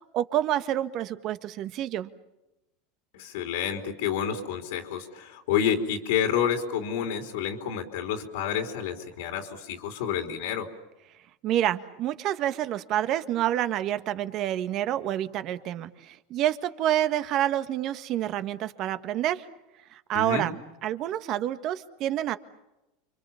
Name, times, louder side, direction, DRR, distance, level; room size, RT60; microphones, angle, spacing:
voice 1, 0.1-2.1 11.4-19.5 19.9-22.4, right 12 dB, 50° right, 11 dB, 1.6 m, -28 dB
voice 2, 3.1-10.7 20.1-20.5, left 8 dB, 80° left, 4 dB, 3.3 m, -29 dB
29.5 x 25.0 x 7.2 m, 0.95 s
supercardioid pair, 120°, 0 cm